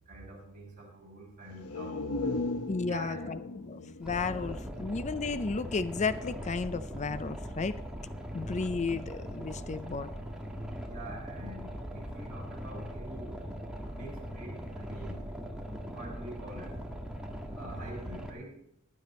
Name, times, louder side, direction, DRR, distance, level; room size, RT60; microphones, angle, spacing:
voice 1, 0.1-2.3 2.8-3.3 4.4-4.6 10.7-13.4 13.9-15.2 15.9-16.8 17.5-18.6, right 1 dB, 40° right, -4 dB, 6.1 m, -46 dB
sound 1, 1.5-5.2 5.6-5.7, left 2 dB, 85° left, 1.0 m, -37 dB
voice 2, 2.7-7.8 8.3-10.1, left 4 dB, 30° left, 13 dB, 0.5 m, -33 dB
Boat Water vehicle, 4.0-18.3, equal, 5° right, 1.6 m, -40 dB
15.5 x 10.0 x 4.3 m, 0.72 s
head